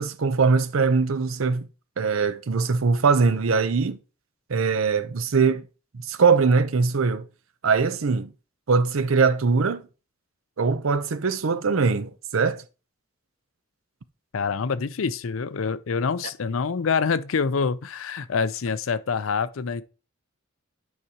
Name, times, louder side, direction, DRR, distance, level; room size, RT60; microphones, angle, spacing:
voice 1, 0.0-1.7 2.0-4.0 4.5-5.6 5.9-7.3 7.6-8.3 8.7-9.8 10.6-12.6, right 4 dB, 80° right, 0.6 m, -22 dB
voice 2, 14.3-19.8, left 5 dB, 80° left, 0.5 m, -26 dB
9.4 x 4.8 x 2.9 m
head